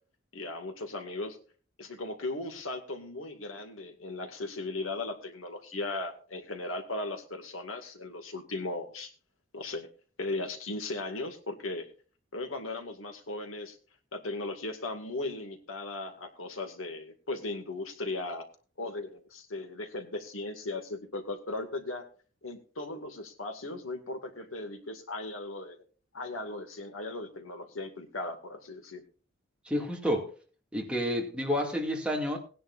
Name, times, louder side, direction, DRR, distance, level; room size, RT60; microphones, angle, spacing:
voice 1, 0.3-1.4 1.8-9.1 9.5-9.9 10.2-11.9 12.3-13.8 14.1-18.5 18.8-22.0 22.4-25.8 26.1-29.0, left 2 dB, 80° left, 2.2 m, -37 dB
voice 2, 29.7-30.3 30.7-32.4, equal, 5° right, 2.3 m, -29 dB
19.0 x 10.5 x 2.6 m
head